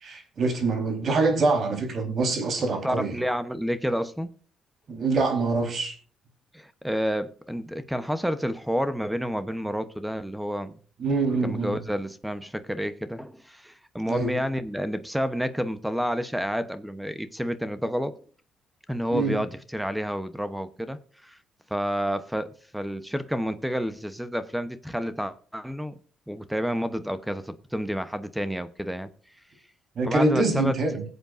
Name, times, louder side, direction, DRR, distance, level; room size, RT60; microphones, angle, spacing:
voice 1, 0.0-3.2 4.9-5.9 11.0-11.8 14.1-14.3 19.1-19.4 30.0-31.0, right 3 dB, 45° right, 4.0 m, -25 dB
voice 2, 2.6-4.3 6.5-10.7 11.4-18.2 18.9-21.4 21.7-25.9 26.3-29.1 30.0-30.7, equal, 5° right, 0.9 m, -30 dB
20.5 x 8.1 x 2.6 m
cardioid pair, 125°, 0 cm